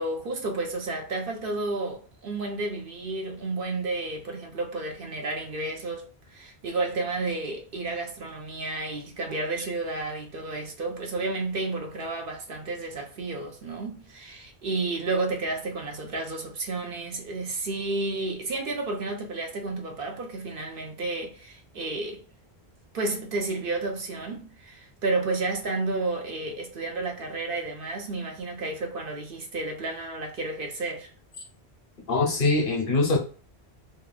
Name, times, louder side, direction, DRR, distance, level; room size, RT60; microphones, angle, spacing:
voice 1, 0.0-22.2 22.9-31.1, right 3 dB, 60° right, 0.8 m, -31 dB
voice 2, 32.1-33.2, left 3 dB, 60° left, 1.0 m, -23 dB
2.9 x 2.4 x 2.2 m
omnidirectional pair, 1.1 m